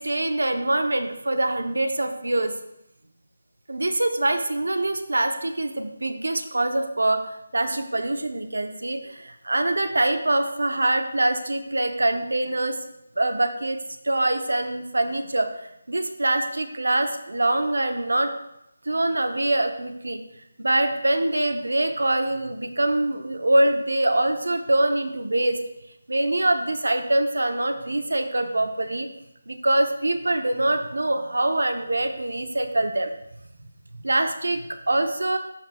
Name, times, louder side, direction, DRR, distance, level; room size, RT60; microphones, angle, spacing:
voice 1, 0.0-2.5 3.7-7.3 7.5-12.8 13.2-13.8 14.0-15.5 15.9-18.3 18.9-20.2 20.6-25.6 26.1-29.1 29.5-33.1 33.9-35.4, right 1 dB, 90° right, 7 dB, 0.7 m, -24 dB
12.0 x 4.3 x 2.3 m, 0.80 s
figure-of-eight pair, 165°, 0 cm